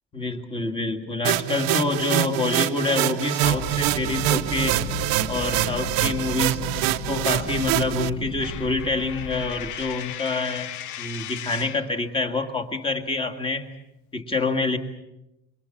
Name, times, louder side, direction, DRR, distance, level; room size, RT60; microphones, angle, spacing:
voice 1, 0.1-4.8 5.3-10.7 11.0-13.7 14.1-14.8, left 3 dB, 15° left, 5 dB, 2.0 m, -27 dB
sound 1, 1.2-8.1, right 16 dB, 80° right, 1.0 m, -25 dB
sound 2, 3.4-10.0, left 3 dB, 45° left, 2.0 m, -35 dB
Coin (dropping), 8.4-11.9, left 12 dB, 65° left, 1.0 m, -36 dB
27.0 x 24.5 x 7.3 m, 0.89 s
cardioid pair, 180°, 33 cm